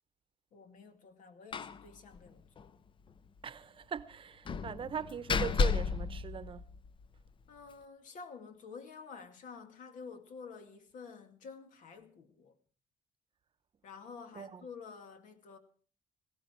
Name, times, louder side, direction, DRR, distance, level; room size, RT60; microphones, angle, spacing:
voice 1, 0.5-2.7 7.5-12.5 13.8-15.6, left 5 dB, 75° left, 2.3 m, -50 dB
Slam, 1.5-1.8 2.1-2.2 2.6-2.7 4.5-7.1, left 5 dB, 40° left, 0.7 m, -33 dB
voice 2, 3.4-6.6 14.3-14.6, right 7 dB, 40° right, 0.8 m, -40 dB
18.0 x 16.0 x 4.5 m
cardioid pair, 135°, 13 cm